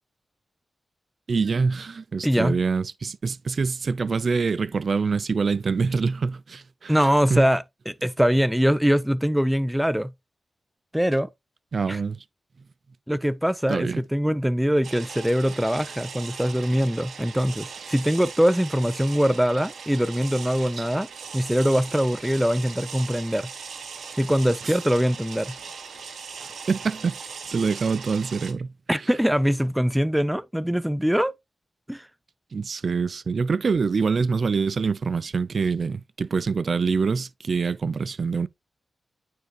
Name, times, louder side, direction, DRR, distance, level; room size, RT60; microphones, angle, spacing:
voice 1, 1.3-7.5 11.7-12.2 13.7-14.0 20.8-20.9 24.6-24.7 26.4-27.2 27.5-28.7 32.5-38.5, right 5 dB, 55° right, 0.4 m, -25 dB
voice 2, 2.2-2.6 6.9-10.1 10.9-11.3 11.9-12.0 13.1-21.1 21.3-23.5 24.2-25.5 28.9-31.3 31.9-32.1, equal, 5° right, 0.6 m, -23 dB
sound 1, 14.8-28.5, right 5 dB, 85° right, 1.2 m, -39 dB
9.3 x 4.6 x 3.0 m
wide cardioid pair, 95°, 0 cm